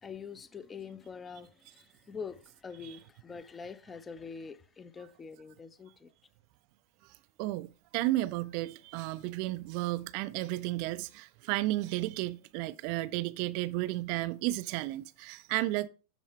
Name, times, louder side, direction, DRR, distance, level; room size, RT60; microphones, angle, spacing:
voice 1, 0.0-6.1, left 5 dB, 15° left, 0.5 m, -45 dB
voice 2, 7.4-15.9, right 17 dB, 45° right, 0.3 m, -33 dB
12.5 x 4.3 x 3.4 m
figure-of-eight pair, 90°, 0 cm